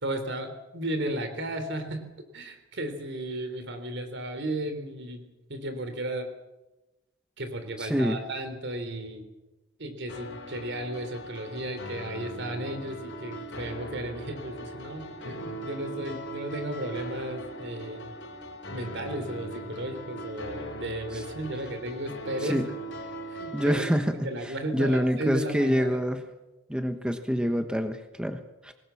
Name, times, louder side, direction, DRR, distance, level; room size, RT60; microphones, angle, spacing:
voice 1, 0.0-2.0 2.3-6.3 7.4-9.3 9.8-18.1 18.7-22.7 23.3-23.8 24.2-26.0, right 1 dB, 60° right, 8 dB, 3.9 m, -34 dB
voice 2, 7.8-8.2 21.1-21.2 22.4-22.7 23.5-26.2 26.7-28.7, equal, 5° right, 6 dB, 1.2 m, -27 dB
sound 1, 10.1-23.8, right 1 dB, 60° left, 4.7 m, -40 dB
25.0 x 20.0 x 7.2 m, 1.0 s
head